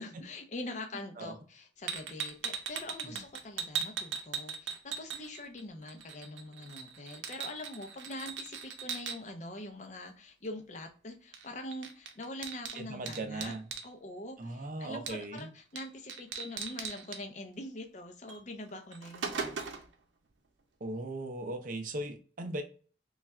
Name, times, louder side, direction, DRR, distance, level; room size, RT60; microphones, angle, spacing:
voice 1, 0.0-13.5 13.8-19.6, left 1 dB, 40° left, 5 dB, 0.5 m, -44 dB
sound 1, 1.9-5.6 5.9-9.2 11.3-11.5 11.7-13.9 15.1-15.4 15.8-17.2 18.3-18.4 18.8-19.9, right 6 dB, 90° right, 0.6 m, -38 dB
voice 2, 12.7-13.6 14.4-15.5 20.8-22.6, right 2 dB, 45° right, 7 dB, 0.5 m, -38 dB
3.2 x 2.4 x 4.2 m, 0.40 s
head